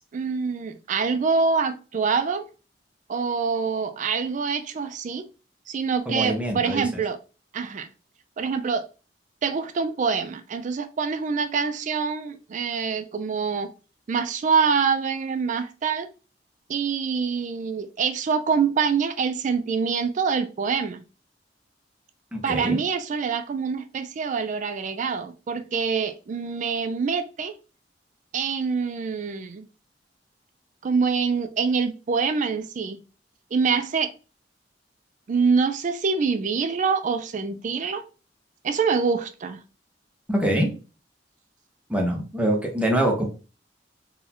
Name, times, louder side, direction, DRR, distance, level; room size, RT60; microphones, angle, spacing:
voice 1, 0.0-2.5 3.1-5.3 5.7-7.2 7.5-7.9 8.4-8.9 9.4-13.7 14.1-16.1 16.7-21.0 22.4-27.5 28.3-29.7 30.8-33.0 33.5-34.1 35.3-38.0 38.6-39.6, right 5 dB, 45° right, 0.4 m, -25 dB
voice 2, 6.1-6.8 22.3-22.8 40.3-40.7 41.9-43.2, right 1 dB, 5° right, 0.9 m, -24 dB
3.9 x 2.7 x 2.9 m
head